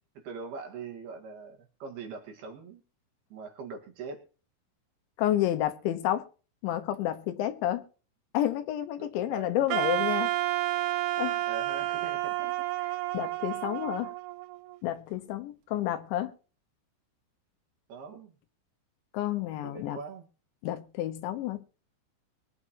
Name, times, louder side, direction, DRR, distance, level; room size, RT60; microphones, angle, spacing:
voice 1, 0.2-2.8 3.3-4.2 9.0-9.5 11.5-12.6 13.4-13.6 17.9-18.4 19.6-20.3, right 4 dB, 60° right, 3.4 m, -42 dB
voice 2, 5.2-6.2 6.6-7.8 8.3-10.3 10.7-11.4 13.1-14.1 14.8-16.3 19.1-20.0 20.6-21.7, left 12 dB, 75° left, 3.2 m, -30 dB
Wind instrument woodwind instrument, 9.7-14.7, right 15 dB, 90° right, 3.5 m, -30 dB
22.5 x 9.6 x 3.0 m
omnidirectional pair, 5.6 m